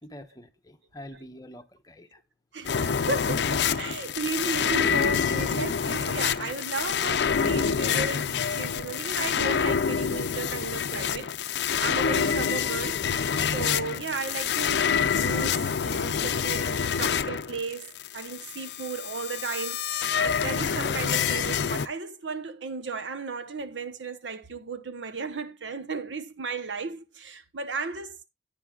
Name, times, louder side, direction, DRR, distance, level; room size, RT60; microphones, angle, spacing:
voice 1, 0.0-2.2, left 1 dB, 20° left, 0.9 m, -46 dB
voice 2, 2.5-13.1 13.4-28.2, right 4 dB, 85° right, 1.0 m, -35 dB
sound 1, 2.6-21.9, left 7 dB, 65° left, 0.5 m, -27 dB
10.5 x 9.1 x 2.4 m
head